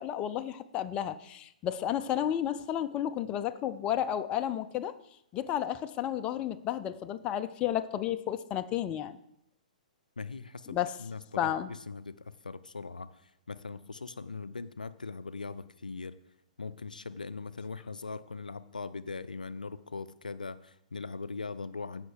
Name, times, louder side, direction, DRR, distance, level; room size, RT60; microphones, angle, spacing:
voice 1, 0.0-4.9 5.3-9.2 10.7-10.9 11.4-11.7, left 11 dB, 25° left, 10 dB, 0.5 m, -32 dB
voice 2, 10.2-16.2 16.6-22.1, left 4 dB, 80° left, 14 dB, 0.4 m, -41 dB
15.5 x 5.8 x 4.8 m, 0.77 s
figure-of-eight pair, 115°, 4 cm